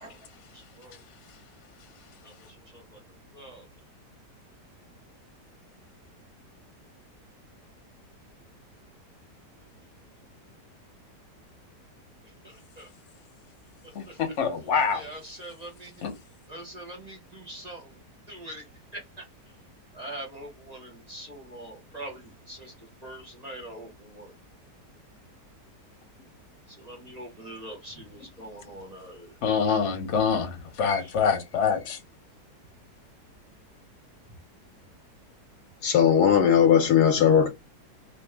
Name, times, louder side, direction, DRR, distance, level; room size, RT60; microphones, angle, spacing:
voice 1, 0.5-1.0 2.2-2.3 2.7-3.0 3.3-3.6 12.4-12.9 14.1-14.2 14.9-15.9 16.5-18.0 18.3-18.6 18.9-19.2 19.9-22.7 23.0-24.3 26.8-29.3, right 1 dB, 40° right, 0.5 m, -43 dB
voice 2, 13.9-15.1 16.0-16.1 29.4-32.0, left 6 dB, 55° left, 0.9 m, -25 dB
voice 3, 35.8-37.5, left 8 dB, 75° left, 1.0 m, -18 dB
2.9 x 2.1 x 3.3 m
omnidirectional pair, 1.8 m